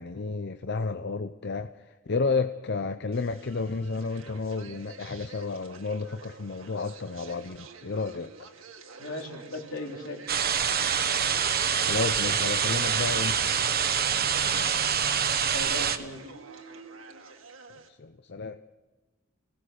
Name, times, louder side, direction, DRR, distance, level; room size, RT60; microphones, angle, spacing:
voice 1, 0.0-8.5 11.8-14.8 17.9-18.6, left 4 dB, 55° left, 9 dB, 0.7 m, -32 dB
sound 1, 3.1-17.9, right 4 dB, 80° right, 2.1 m, -48 dB
voice 2, 9.0-10.2 15.5-16.2, left 1 dB, 75° left, 1 dB, 3.7 m, -37 dB
sound 2, 10.3-16.0, right 7 dB, 50° right, 1.2 m, -26 dB
26.0 x 18.0 x 6.5 m, 1.2 s
head